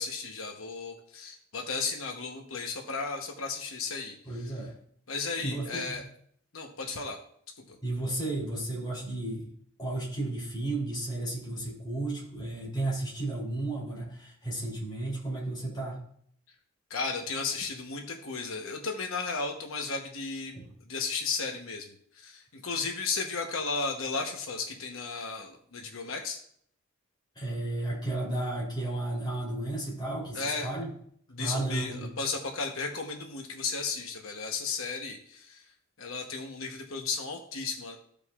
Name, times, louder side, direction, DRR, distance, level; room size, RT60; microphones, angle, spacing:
voice 1, 0.0-4.5 5.1-6.0 6.5-7.2 7.7-7.8 16.9-20.5 20.8-26.4 30.3-30.7 31.3-35.7 36.0-38.0, left 4 dB, 85° left, 2 dB, 1.0 m, -34 dB
voice 2, 4.3-4.7 5.4-6.0 7.8-9.5 9.8-16.0 20.5-20.7 27.3-30.9 31.4-32.1, right 2 dB, 20° left, -5 dB, 3.1 m, -33 dB
14.5 x 5.2 x 2.4 m, 0.65 s
head